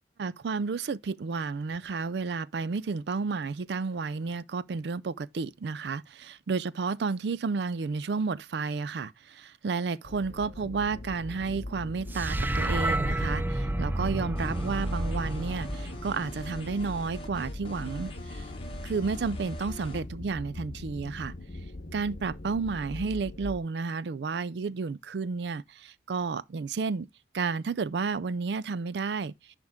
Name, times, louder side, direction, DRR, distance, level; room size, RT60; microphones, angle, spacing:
voice 1, 0.2-18.5 18.8-21.3 21.9-27.1 27.3-29.3, right 4 dB, 75° right, 0.4 m, -31 dB
sound 1, 10.0-23.6, left 1 dB, 55° left, 0.9 m, -40 dB
sound 2, 12.1-16.5, right 1 dB, 10° right, 0.3 m, -30 dB
sound 3, 14.3-20.0, left 1 dB, 30° left, 1.4 m, -45 dB
10.5 x 3.6 x 3.5 m
head